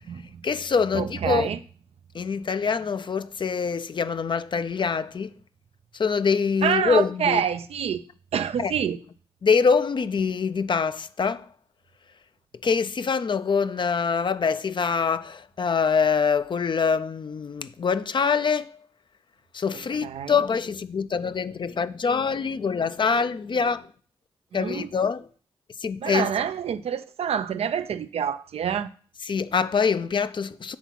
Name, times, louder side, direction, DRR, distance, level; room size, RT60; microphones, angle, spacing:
voice 1, 0.4-1.5 2.1-5.3 5.9-7.4 8.6-8.7 9.4-11.5 12.6-18.8 19.5-23.9 24.5-25.3 25.8-26.3 29.2-30.8, left 5 dB, 50° left, 0.5 m, -24 dB
voice 2, 0.9-1.6 6.6-8.0 8.3-9.0 20.0-20.3 24.6-24.9 26.0-28.9, right 8 dB, 70° right, 0.5 m, -27 dB
7.3 x 3.6 x 5.8 m
supercardioid pair, 40°, 11 cm